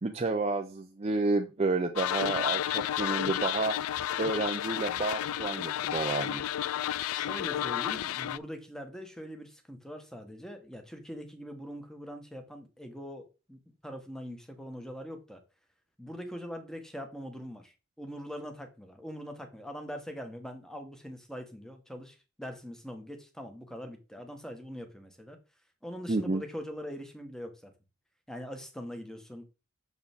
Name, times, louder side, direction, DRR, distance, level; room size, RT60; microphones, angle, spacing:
voice 1, 0.0-3.8 4.2-6.4 26.1-26.4, right 3 dB, 30° right, 0.5 m, -30 dB
sound 1, 2.0-8.4, left 11 dB, 75° left, 0.3 m, -32 dB
voice 2, 7.1-15.4 16.0-25.4 25.8-27.7 28.3-29.4, equal, 5° left, 1.2 m, -42 dB
6.8 x 6.8 x 3.5 m
head